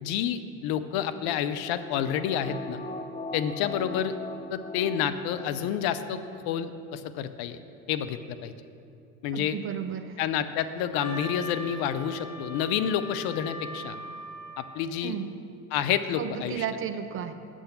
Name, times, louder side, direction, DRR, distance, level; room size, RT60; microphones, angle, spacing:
voice 1, 0.0-2.8 3.3-4.1 4.5-7.6 7.9-8.5 9.2-9.6 10.2-14.0 14.6-15.1 15.7-16.6, left 9 dB, 55° left, 11 dB, 0.6 m, -29 dB
Neo Sweep, 1.4-5.9 6.3-6.4, left 2 dB, 15° left, 0.7 m, -40 dB
voice 2, 9.3-10.2 15.0-15.3 16.2-17.3, right 9 dB, 30° right, 10 dB, 0.4 m, -33 dB
Wind instrument woodwind instrument, 10.9-14.8, left 1 dB, 35° left, 2.6 m, -40 dB
7.9 x 6.1 x 6.7 m, 2.5 s
hypercardioid pair, 70°, 44 cm